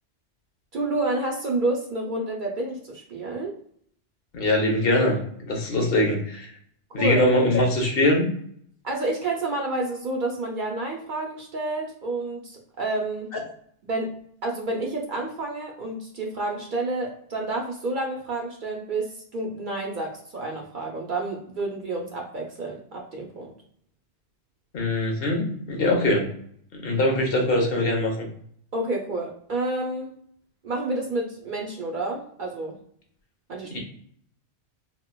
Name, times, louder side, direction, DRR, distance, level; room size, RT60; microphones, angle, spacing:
voice 1, 0.7-3.5 7.0-7.2 8.8-13.3 13.8-14.1 14.4-23.5 28.7-30.1 30.6-32.8 33.5-33.8, right 2 dB, 55° right, 0 dB, 0.6 m, -29 dB
voice 2, 4.3-5.2 5.4-6.5 6.9-8.3 24.7-26.3 26.8-28.3 33.7-33.8, left 1 dB, 60° left, 1 dB, 0.9 m, -22 dB
4.1 x 2.2 x 2.2 m, 0.64 s
omnidirectional pair, 1.2 m